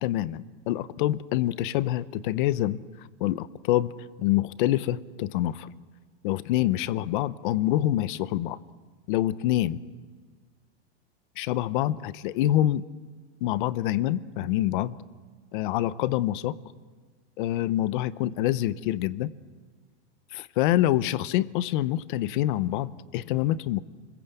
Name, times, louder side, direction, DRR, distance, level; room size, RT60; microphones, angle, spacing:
voice 1, 0.0-2.8 3.2-3.9 4.2-5.7 6.2-8.6 9.1-9.8 11.4-12.8 13.4-15.0 15.5-16.6 17.4-19.3 20.3-23.8, left 14 dB, 45° left, 17 dB, 0.8 m, -26 dB
29.0 x 21.5 x 8.3 m, 1.5 s
supercardioid pair, 175°, 35 cm